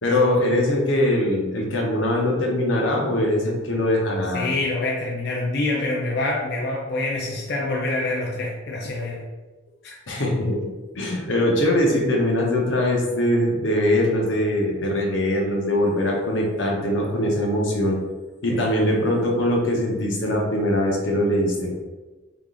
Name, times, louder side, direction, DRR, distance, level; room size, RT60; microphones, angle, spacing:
voice 1, 0.0-4.5 10.1-10.7 10.9-18.0 18.4-21.7, left 1 dB, 85° left, 0 dB, 0.8 m, -22 dB
voice 2, 4.3-9.2 9.8-10.0 18.5-18.9, left 2 dB, 60° left, -3 dB, 0.5 m, -26 dB
3.5 x 2.4 x 3.7 m, 1.2 s
head